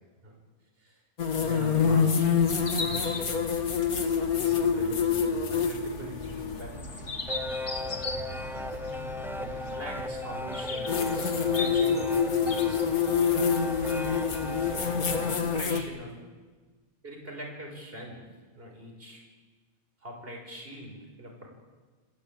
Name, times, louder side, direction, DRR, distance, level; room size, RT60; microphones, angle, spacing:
sound 1, 1.2-6.7 8.7-8.8 10.9-15.8, left 6 dB, 90° left, 2.3 m, -26 dB
voice 1, 1.3-2.3 2.8-3.4 4.3-7.1 9.4-12.9 14.3-16.1 17.0-18.2 18.5-19.3 20.0-21.5, equal, 40° right, 0 dB, 5.7 m, -43 dB
sound 2, 2.3-15.3, left 2 dB, 55° left, 2.7 m, -40 dB
sound 3, 6.7-15.6, left 1 dB, ahead, 0.7 m, -36 dB
28.5 x 18.5 x 8.8 m, 1.4 s
omnidirectional pair, 1.5 m